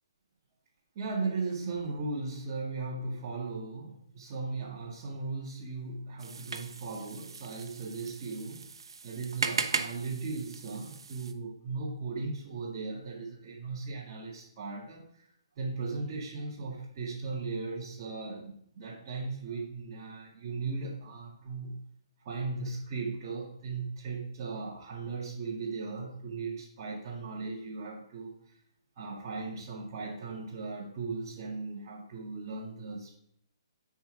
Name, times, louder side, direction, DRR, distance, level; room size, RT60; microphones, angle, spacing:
voice 1, 0.9-8.6 9.0-21.7 22.2-28.6 29.0-33.2, right 4 dB, 25° right, -5 dB, 0.7 m, -37 dB
sound 1, 6.2-11.3, right 5 dB, 85° right, 0.6 m, -37 dB
4.5 x 4.4 x 5.7 m, 0.71 s
hypercardioid pair, 175°, 3 cm